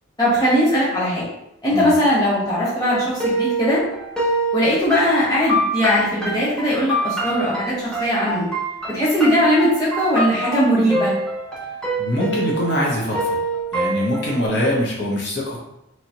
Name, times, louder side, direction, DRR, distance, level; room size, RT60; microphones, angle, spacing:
voice 1, 0.2-1.2 1.6-3.8 4.5-8.5 8.9-11.1, equal, 20° left, -8 dB, 1.2 m, -19 dB
sound 1, 2.9-14.4, right 1 dB, 5° left, 0.5 m, -25 dB
voice 2, 12.0-13.4 13.7-15.6, left 1 dB, 65° left, -4 dB, 0.9 m, -23 dB
3.2 x 2.8 x 2.9 m, 0.85 s
head